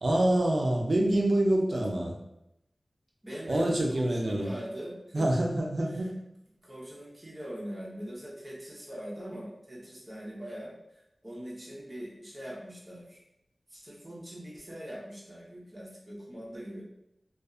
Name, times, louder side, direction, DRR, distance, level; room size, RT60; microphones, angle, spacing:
voice 1, 0.0-2.1 3.5-4.5 5.1-6.1, right 1 dB, 60° right, 0 dB, 0.5 m, -26 dB
voice 2, 3.2-5.3 5.9-6.1 6.6-13.2 13.7-16.8, equal, 30° right, -5 dB, 0.9 m, -42 dB
2.6 x 2.4 x 2.4 m, 0.84 s
wide cardioid pair, 65°, 0 cm